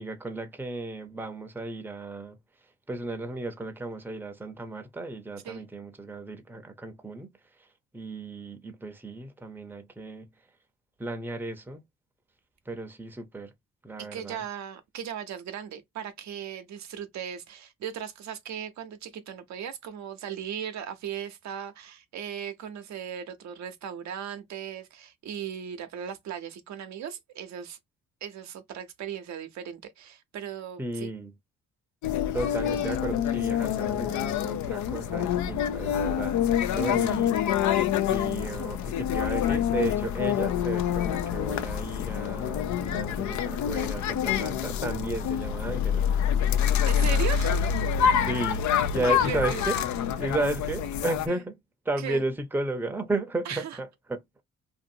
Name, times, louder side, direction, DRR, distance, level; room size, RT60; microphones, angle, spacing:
voice 1, 0.0-2.4 2.9-7.3 7.6-7.7 7.9-10.3 11.0-11.8 12.7-13.5 13.8-14.4 30.8-31.3 32.3-37.4 38.1-46.1 48.3-49.8 50.2-51.5 51.8-54.4, right 2 dB, 5° right, 0.7 m, -34 dB
voice 2, 14.1-27.8 28.2-31.1 46.4-46.5 46.9-47.7 49.0-49.6 51.3-51.4 52.0-52.2 53.4-53.8, right 8 dB, 65° right, 0.7 m, -37 dB
sound 1, 32.0-51.3, left 9 dB, 70° left, 0.5 m, -26 dB
2.6 x 2.5 x 2.7 m
cardioid pair, 90°, 30 cm